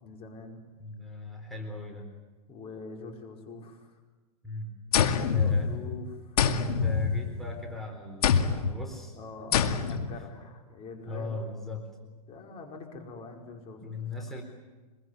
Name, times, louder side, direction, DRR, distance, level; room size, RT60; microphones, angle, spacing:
voice 1, 0.0-0.6 2.5-4.0 5.1-6.4 8.9-11.4 12.3-13.9, left 4 dB, 30° left, 2 dB, 5.0 m, -44 dB
voice 2, 0.8-2.1 4.4-4.8 5.3-5.7 6.4-9.2 9.5-10.0 11.1-11.9 13.8-14.4, left 2 dB, ahead, 1 dB, 4.2 m, -39 dB
sound 1, 4.9-6.0 6.4-7.6 8.2-8.8 9.5-10.1, left 6 dB, 75° left, 2.3 m, -25 dB
25.0 x 23.0 x 9.7 m, 1.3 s
hypercardioid pair, 135°, 20 cm